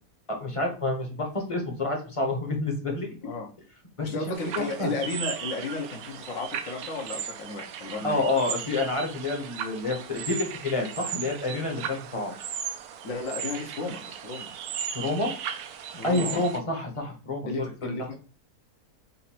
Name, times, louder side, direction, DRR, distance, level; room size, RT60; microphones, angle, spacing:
voice 1, 0.3-3.1 4.0-4.1 4.6-4.9 8.0-12.3 14.9-15.3 16.0-17.5 17.8-17.9, left 2 dB, 25° left, 2 dB, 0.9 m, -28 dB
voice 2, 4.0-8.2 13.0-14.5 16.0-16.4 17.4-18.1, left 3 dB, 60° left, 1 dB, 1.3 m, -33 dB
sound 1, 4.3-16.6, right 8 dB, 80° right, 1.1 m, -37 dB
4.1 x 2.6 x 4.2 m, 0.37 s
omnidirectional pair, 1.6 m